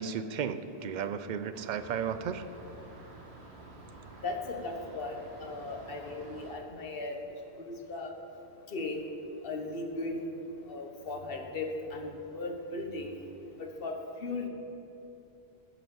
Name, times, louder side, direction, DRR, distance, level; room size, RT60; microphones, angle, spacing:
voice 1, 0.0-2.4, right 7 dB, 55° right, 11 dB, 0.6 m, -34 dB
sound 1, 1.5-6.6, right 2 dB, 75° right, 1.6 m, -50 dB
voice 2, 4.2-7.2 7.7-8.1 8.7-9.0 9.4-10.3 10.7-13.2 13.6-14.5, left 3 dB, 60° left, 3 dB, 1.4 m, -37 dB
16.0 x 5.8 x 7.1 m, 2.8 s
omnidirectional pair, 1.1 m